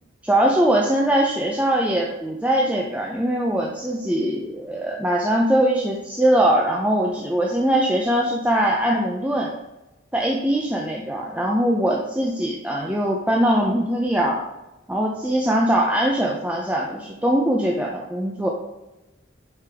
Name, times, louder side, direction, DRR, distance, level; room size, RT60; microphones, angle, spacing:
voice 1, 0.2-9.5 10.1-14.4 14.9-18.5, right 1 dB, 5° right, -2 dB, 0.5 m, -21 dB
6.6 x 5.0 x 3.5 m, 0.99 s
head